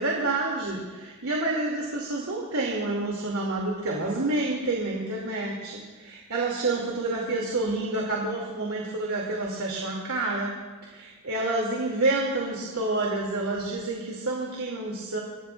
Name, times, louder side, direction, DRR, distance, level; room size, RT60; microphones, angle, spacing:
voice 1, 0.0-10.5 10.8-15.2, right 2 dB, 90° right, -2 dB, 2.5 m, -28 dB
26.0 x 19.0 x 2.4 m, 1.4 s
head